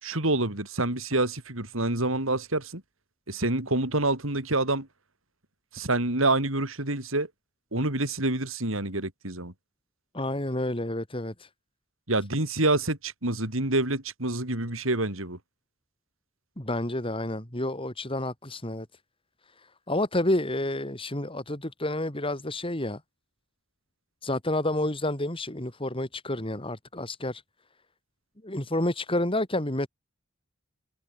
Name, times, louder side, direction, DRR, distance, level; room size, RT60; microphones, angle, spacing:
voice 1, 0.0-2.8 3.3-4.9 5.7-7.3 7.7-9.5 12.1-15.4, right 2 dB, 70° right, 4.8 m, -27 dB
voice 2, 10.1-11.5 16.6-18.9 19.6-23.0 24.2-27.4 28.4-29.9, left 1 dB, 25° left, 3.6 m, -29 dB
head